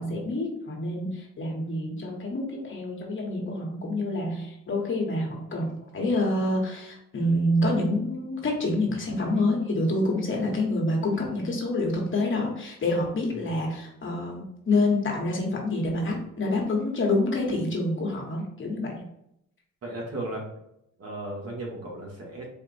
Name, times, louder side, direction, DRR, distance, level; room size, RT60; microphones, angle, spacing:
voice 1, 0.0-19.1, left 2 dB, 40° left, -1 dB, 1.3 m, -27 dB
voice 2, 19.8-20.5 21.0-22.5, right 1 dB, 55° right, -3 dB, 1.7 m, -35 dB
4.3 x 2.5 x 4.2 m, 0.77 s
cardioid pair, 90°, 30 cm